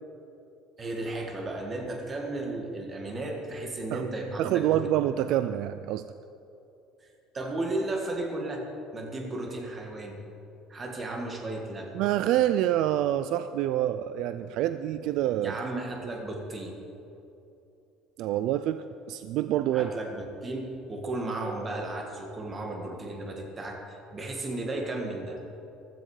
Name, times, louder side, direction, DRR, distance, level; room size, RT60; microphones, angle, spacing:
voice 1, 0.8-4.9 7.0-7.1 7.3-8.6 8.9-10.2 10.7-11.9 15.4-16.8 19.7-25.4, right 2 dB, 20° right, 2 dB, 1.8 m, -34 dB
voice 2, 4.4-6.1 11.9-15.5 18.2-19.9, right 12 dB, 60° right, 12 dB, 0.4 m, -27 dB
15.5 x 13.0 x 4.9 m, 2.8 s
cardioid pair, 160°, 0 cm